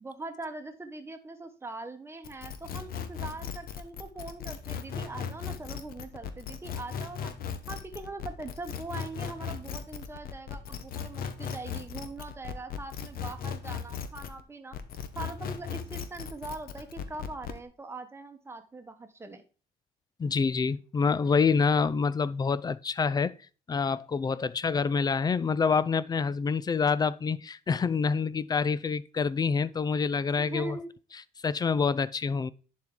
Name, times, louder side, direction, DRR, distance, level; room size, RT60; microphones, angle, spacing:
voice 1, 0.0-7.3 7.7-14.8 15.1-19.4 30.4-30.9, right 3 dB, 15° right, 1.2 m, -42 dB
sound 1, 2.2-14.4 14.7-17.6, left 7 dB, 60° left, 1.0 m, -37 dB
voice 2, 20.2-23.3 23.7-30.8 31.4-32.5, left 5 dB, 25° left, 0.4 m, -27 dB
10.5 x 4.6 x 3.7 m
cardioid pair, 110°, 17 cm